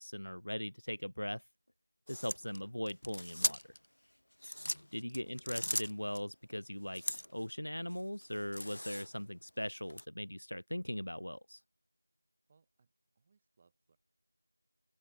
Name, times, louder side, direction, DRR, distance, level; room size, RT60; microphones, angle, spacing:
voice 1, 0.0-1.4 2.1-3.6 4.9-7.0 7.3-11.6, equal, 60° left, 0.4 m, -40 dB
sound 1, 2.1-3.9 4.3-6.2 6.9-7.4 7.9-9.3 9.9-10.1, left 1 dB, 40° left, 0.8 m, -39 dB
voice 2, 4.5-4.9 12.5-14.0, right 5 dB, 5° right, 2.4 m, -73 dB
open air
figure-of-eight pair, 180°, 0 cm